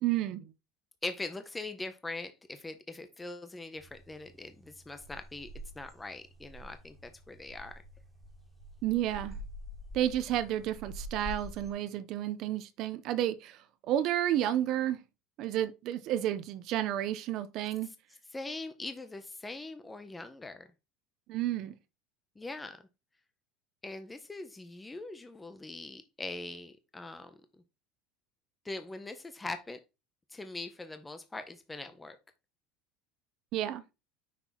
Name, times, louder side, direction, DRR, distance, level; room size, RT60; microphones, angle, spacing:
voice 1, 0.0-0.5 8.8-9.4 9.9-15.0 15.4-17.9 21.3-21.7 33.5-33.8, right 12 dB, 45° right, 0.6 m, -31 dB
voice 2, 1.0-5.5 5.8-7.7 18.3-20.7 22.4-22.8 23.8-27.4 28.6-29.8 30.3-32.2, left 2 dB, 10° left, 0.6 m, -42 dB
sound 1, 3.8-11.7, equal, 5° right, 1.2 m, -47 dB
5.9 x 4.4 x 4.0 m
cardioid pair, 155°, 0 cm